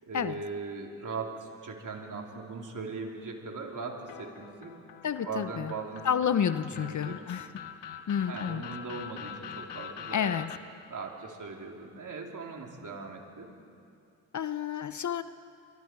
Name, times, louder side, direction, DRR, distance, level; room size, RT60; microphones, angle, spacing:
voice 1, 0.0-4.8 5.2-6.0 6.7-7.2 8.3-10.4 10.9-13.5, right 4 dB, 45° right, 0 dB, 3.8 m, -39 dB
sound 1, 4.1-10.6, left 8 dB, 75° left, 1.4 m, -44 dB
voice 2, 5.0-5.7 6.0-7.5 8.1-8.7 10.1-10.5 14.3-15.2, left 8 dB, 45° left, 12 dB, 0.9 m, -30 dB
26.5 x 23.5 x 4.7 m, 2.4 s
supercardioid pair, 60°, 42 cm